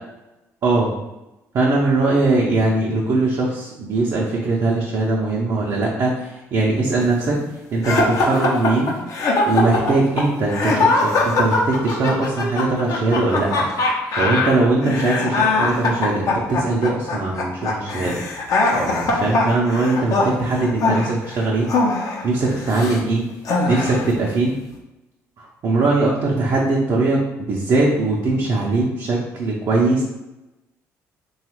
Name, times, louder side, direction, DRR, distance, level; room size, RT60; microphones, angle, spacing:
voice 1, 1.5-7.4 7.7-8.9 9.5-13.7 14.2-18.2 18.7-21.7 22.2-23.2 23.7-24.5 25.4-30.0, right 3 dB, 60° right, -3 dB, 0.6 m, -20 dB
sound 1, 7.8-23.0 23.4-24.1, left 3 dB, 60° left, 0.6 m, -21 dB
3.0 x 2.3 x 2.9 m, 0.97 s
supercardioid pair, 65°, 7 cm